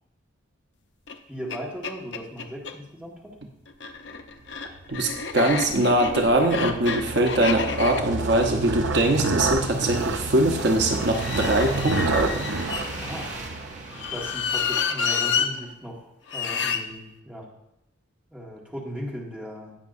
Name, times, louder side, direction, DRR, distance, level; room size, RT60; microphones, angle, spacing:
sound 1, 1.1-1.2 1.5-1.6 1.8-2.7 3.7-9.8 11.0-13.3 13.9-15.5 16.3-16.8, left 6 dB, 65° left, 0.7 m, -30 dB
voice 1, 1.3-3.3 13.0-13.3 14.1-16.1 16.3-17.5 18.3-19.8, equal, 5° right, -3 dB, 1.7 m, -37 dB
sound 2, 4.7-14.3, right 3 dB, 85° right, 0.6 m, -30 dB
voice 2, 4.9-12.5, right 1 dB, 60° right, 3 dB, 0.9 m, -22 dB
sound 3, 6.9-15.2 15.6-15.7, right 2 dB, 40° right, 1.3 m, -39 dB
18.0 x 5.9 x 2.6 m, 0.86 s
head